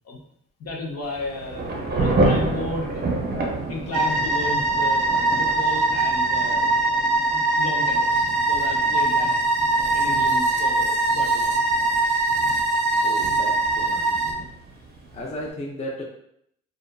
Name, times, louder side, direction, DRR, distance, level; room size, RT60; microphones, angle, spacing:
voice 1, 0.6-1.7 1.9-3.1 3.5-5.1 5.4-6.8 7.2-9.3 9.7-11.5, left 2 dB, 55° left, -1 dB, 0.7 m, -34 dB
Thunder / Rain, 1.0-15.5, right 2 dB, 30° right, 0.6 m, -30 dB
sound 1, 3.9-14.3, right 2 dB, 80° right, 0.5 m, -22 dB
voice 2, 13.0-14.3 15.1-16.0, equal, 20° left, -2 dB, 0.5 m, -35 dB
2.5 x 2.3 x 2.2 m, 0.71 s
cardioid pair, 90°, 30 cm